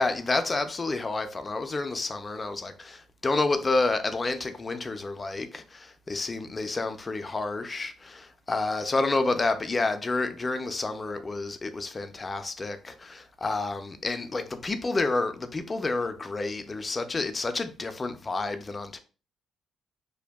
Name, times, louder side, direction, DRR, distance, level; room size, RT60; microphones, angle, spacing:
voice 1, 0.0-19.0, left 3 dB, 30° left, 0.3 m, -29 dB
2.6 x 2.1 x 2.2 m
cardioid pair, 90°, 0 cm